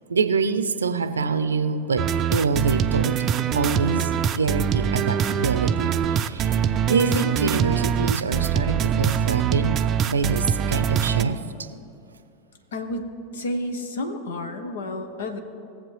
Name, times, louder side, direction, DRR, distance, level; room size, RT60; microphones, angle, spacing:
voice 1, 0.1-3.2 3.5-11.4, right 5 dB, 80° right, 11 dB, 0.6 m, -25 dB
sound 1, 2.0-11.2, right 8 dB, 35° right, 0.5 m, -23 dB
voice 2, 12.7-15.4, left 1 dB, 70° left, 7 dB, 1.1 m, -31 dB
19.0 x 7.4 x 3.2 m, 2.7 s
figure-of-eight pair, 85°, 0 cm